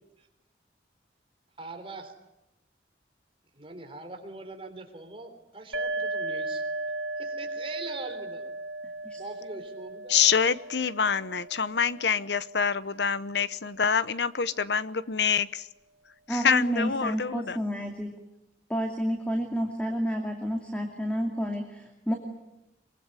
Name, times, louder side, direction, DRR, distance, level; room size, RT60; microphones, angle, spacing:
voice 1, 1.6-2.1 3.5-6.6 7.1-8.5 9.2-10.2, right 3 dB, 30° right, 5 dB, 3.5 m, -42 dB
sound 1, 5.7-13.2, right 2 dB, 80° right, 1.8 m, -36 dB
voice 2, 10.1-15.6 16.4-17.6, left 6 dB, 65° left, 16 dB, 0.9 m, -26 dB
voice 3, 16.3-18.1 18.7-22.1, equal, 5° left, 3 dB, 2.5 m, -30 dB
23.5 x 23.5 x 9.7 m, 0.92 s
head